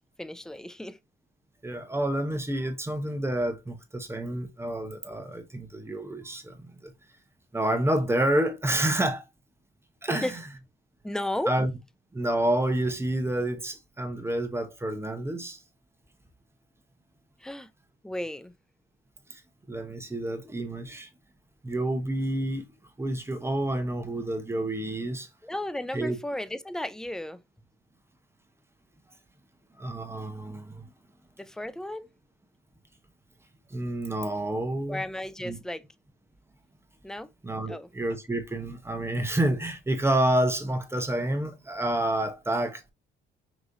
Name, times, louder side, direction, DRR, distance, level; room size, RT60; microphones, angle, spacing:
voice 1, 0.2-1.0 10.2-10.3 11.0-11.5 17.4-17.7 18.0-18.6 25.4-27.4 31.4-32.1 34.9-35.8 37.0-37.3 37.7-37.9, left 1 dB, 5° left, 0.4 m, -34 dB
voice 2, 1.6-6.6 6.8-6.9 7.5-9.2 10.0-10.4 11.5-11.7 12.1-15.6 19.3-19.4 19.7-21.1 21.6-22.6 23.0-25.3 25.9-26.2 29.8-30.8 33.7-35.0 35.4-35.6 37.4-42.9, right 1 dB, 10° right, 0.9 m, -28 dB
5.0 x 3.1 x 2.6 m
cardioid pair, 90°, 20 cm